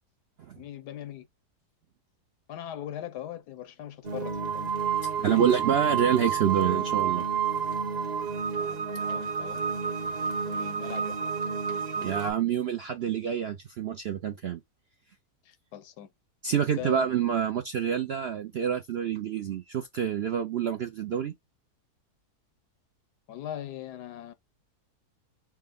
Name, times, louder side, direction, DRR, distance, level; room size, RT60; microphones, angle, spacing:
voice 1, 0.6-1.3 2.5-4.7 5.3-5.6 8.6-9.6 10.4-11.2 11.7-12.1 15.4-16.1 16.6-17.1 23.3-24.3, left 11 dB, 90° left, 1.3 m, -40 dB
sound 1, 4.0-12.3, right 7 dB, 35° right, 0.8 m, -30 dB
voice 2, 5.2-7.2 12.0-14.6 16.4-21.3, right 8 dB, 70° right, 0.6 m, -27 dB
4.4 x 2.1 x 3.5 m
omnidirectional pair, 1.7 m